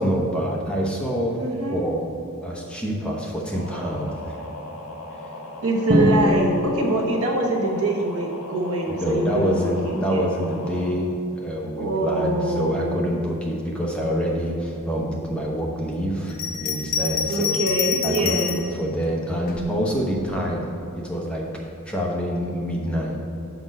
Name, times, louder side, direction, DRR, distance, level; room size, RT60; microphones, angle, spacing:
voice 1, 0.0-1.4 1.7-2.1 2.4-4.4 9.0-17.5 18.0-20.7 21.0-21.5 21.8-23.3, equal, 5° left, -2 dB, 0.9 m, -26 dB
voice 2, 1.3-1.9 5.6-10.2 11.8-13.1 17.3-18.6, right 2 dB, 75° right, 1 dB, 1.1 m, -24 dB
sound 1, 3.5-10.9, left 1 dB, 80° left, 1.3 m, -38 dB
Drum, 5.9-7.6, equal, 40° right, 0.9 m, -22 dB
Bell, 16.3-18.7 19.5-20.4, left 8 dB, 40° left, 0.6 m, -27 dB
6.0 x 5.2 x 6.3 m, 2.7 s
head